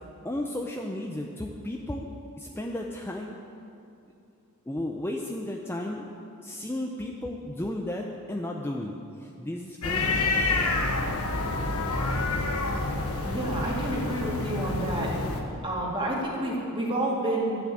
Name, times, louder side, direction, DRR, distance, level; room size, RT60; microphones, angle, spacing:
voice 1, 0.2-2.1 2.4-3.4 4.7-6.1 6.4-10.8, left 1 dB, 10° left, 0 dB, 0.6 m, -34 dB
sound 1, 9.8-15.4, left 2 dB, 75° left, 1.2 m, -28 dB
voice 2, 13.2-15.1 15.6-17.6, right 1 dB, 25° right, -3 dB, 2.5 m, -29 dB
12.0 x 7.1 x 8.5 m, 2.7 s
head